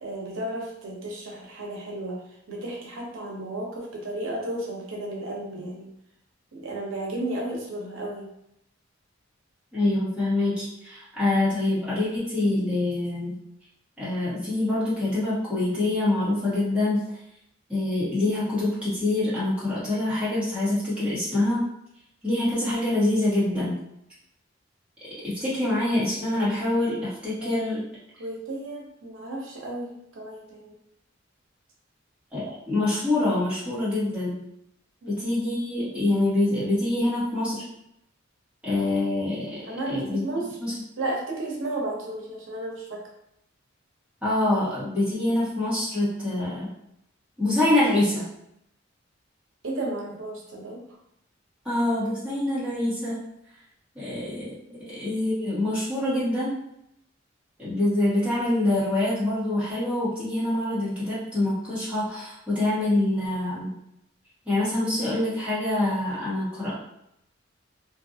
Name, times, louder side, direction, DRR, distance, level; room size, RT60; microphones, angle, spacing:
voice 1, 0.0-2.2 2.5-5.9 6.5-8.3 27.4-27.7 28.2-30.8 35.0-35.2 39.7-40.5 41.0-43.0 49.6-50.8 54.7-54.9, right 1 dB, 90° right, -2 dB, 0.7 m, -33 dB
voice 2, 9.7-13.4 14.0-17.0 17.7-21.6 22.2-23.8 25.2-27.8 32.3-34.4 35.1-37.6 38.6-39.6 39.9-40.2 40.6-40.7 44.2-46.7 47.4-48.3 51.6-53.2 53.9-54.6 54.9-56.5 57.6-63.8 64.4-66.7, left 1 dB, 5° right, -11 dB, 1.2 m, -25 dB
2.6 x 2.5 x 2.6 m, 0.77 s
head